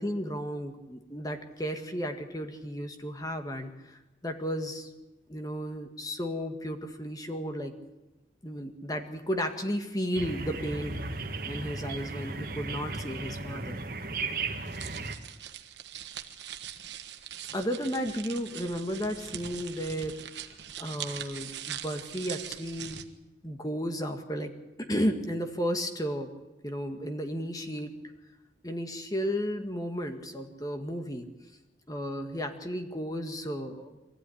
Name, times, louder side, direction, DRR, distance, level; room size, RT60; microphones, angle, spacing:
voice 1, 0.0-4.9 5.3-7.7 8.4-11.0 11.5-13.8 17.5-20.2 20.8-23.0 23.4-26.3 26.6-28.0 28.6-31.3 31.9-34.0, equal, 20° left, 6 dB, 1.7 m, -33 dB
sound 1, 10.1-15.1, right 3 dB, 50° right, 1.9 m, -36 dB
sound 2, 14.7-23.0, right 9 dB, 85° right, 1.5 m, -42 dB
24.0 x 15.0 x 10.0 m, 1.0 s
head